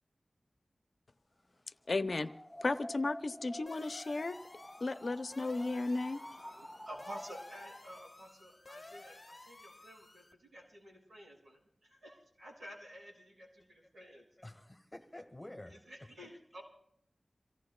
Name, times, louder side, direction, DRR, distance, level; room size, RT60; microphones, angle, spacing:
voice 1, 1.9-2.3 2.6-4.4 4.8-6.2, left 3 dB, 65° left, 0.7 m, -34 dB
sound 1, 2.1-7.9, left 1 dB, ahead, 5.3 m, -50 dB
sound 2, 3.7-10.3, left 2 dB, 40° left, 1.0 m, -54 dB
voice 2, 6.4-14.3 15.7-16.6, equal, 80° right, 6.5 m, -52 dB
voice 3, 14.4-15.8, left 1 dB, 20° left, 1.8 m, -49 dB
28.0 x 17.0 x 2.4 m
wide cardioid pair, 75°, 0 cm